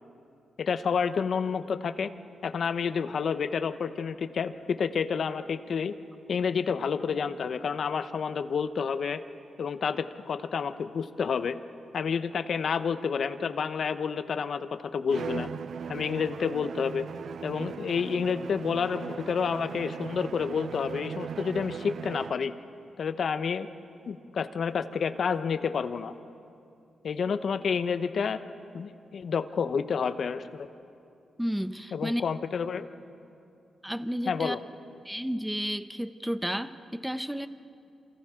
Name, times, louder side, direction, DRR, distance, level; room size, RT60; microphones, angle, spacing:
voice 1, 0.6-2.1 2.4-5.9 6.3-9.2 9.6-11.6 11.9-15.5 15.9-17.1 17.4-22.5 23.0-23.7 24.1-26.1 27.0-28.4 28.7-30.7 31.9-32.9 34.3-34.6, left 6 dB, 60° left, 11 dB, 0.9 m, -29 dB
Bowed string instrument, 15.1-22.5, right 7 dB, 70° right, 0.4 m, -38 dB
voice 2, 31.4-32.2 33.8-34.6 35.0-37.5, equal, 5° right, 11 dB, 0.7 m, -32 dB
28.0 x 28.0 x 3.8 m, 2.6 s
cardioid pair, 90°, 0 cm